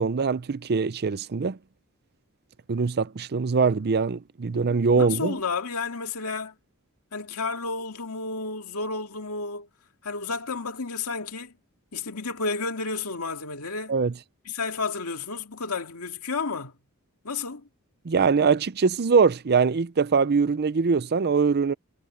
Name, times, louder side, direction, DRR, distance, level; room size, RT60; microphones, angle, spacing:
voice 1, 0.0-1.6 2.7-5.4 13.9-14.1 18.0-21.7, right 5 dB, 50° right, 0.5 m, -22 dB
voice 2, 5.0-6.5 7.1-9.7 10.0-11.5 11.9-14.0 14.5-16.7 17.2-17.6, left 4 dB, 85° left, 2.3 m, -31 dB
head